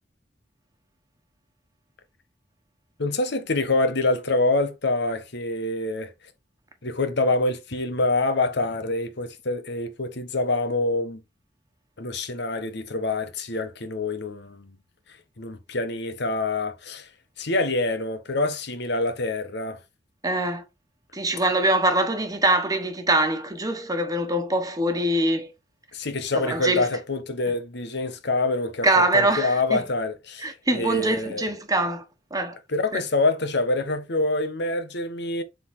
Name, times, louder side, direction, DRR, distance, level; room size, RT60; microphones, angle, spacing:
voice 1, 3.0-6.1 6.8-11.2 12.0-14.7 15.4-17.1 17.4-19.8 25.9-30.5 30.7-31.5 32.7-35.4, left 2 dB, 65° left, 1.2 m, -26 dB
voice 2, 20.2-20.6 21.1-25.5 26.3-26.9 28.8-29.8 30.4-32.0 32.3-32.6 32.9-33.0, right 1 dB, 20° right, 1.4 m, -23 dB
7.1 x 4.0 x 3.7 m
head